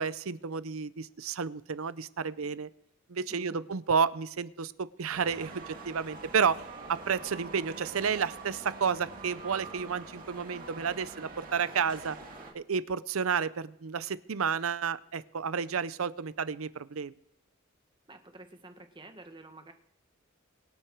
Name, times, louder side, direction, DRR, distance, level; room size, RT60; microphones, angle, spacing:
voice 1, 0.0-2.7 3.1-6.6 6.9-12.2 12.5-17.1, right 6 dB, 80° right, 16 dB, 0.6 m, -31 dB
voice 2, 3.3-3.7 18.1-19.7, right 2 dB, 20° right, 6 dB, 1.3 m, -50 dB
sound 1, 5.1-12.5, right 3 dB, 40° right, 2.4 m, -45 dB
24.0 x 8.0 x 4.6 m, 0.78 s
head